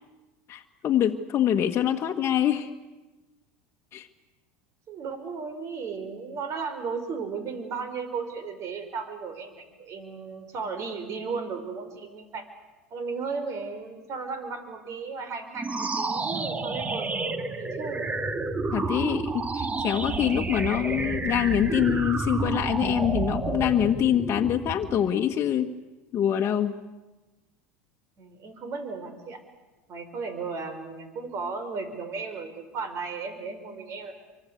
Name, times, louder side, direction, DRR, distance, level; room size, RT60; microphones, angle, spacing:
voice 1, 0.5-2.7 3.9-4.1 18.7-25.7 26.1-26.8, left 10 dB, 40° left, 2 dB, 1.6 m, -25 dB
voice 2, 4.9-12.5 12.9-18.2 28.2-29.4 29.9-34.1, right 5 dB, 45° right, 9 dB, 5.5 m, -35 dB
sound 1, 15.5-25.1, right 3 dB, 20° right, 2.0 m, -30 dB
26.0 x 24.5 x 8.3 m, 1.1 s
hypercardioid pair, 85°, 7 cm